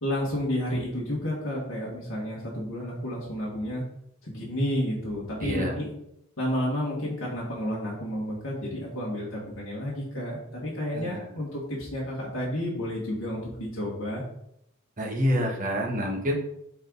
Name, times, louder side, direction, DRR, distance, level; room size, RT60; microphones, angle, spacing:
voice 1, 0.0-3.8 4.2-5.9 6.4-14.2, equal, 65° left, -6 dB, 1.7 m, -31 dB
voice 2, 5.4-5.8 10.9-11.3 15.0-16.3, equal, 35° right, 0 dB, 1.3 m, -27 dB
7.8 x 3.8 x 4.0 m, 0.77 s
head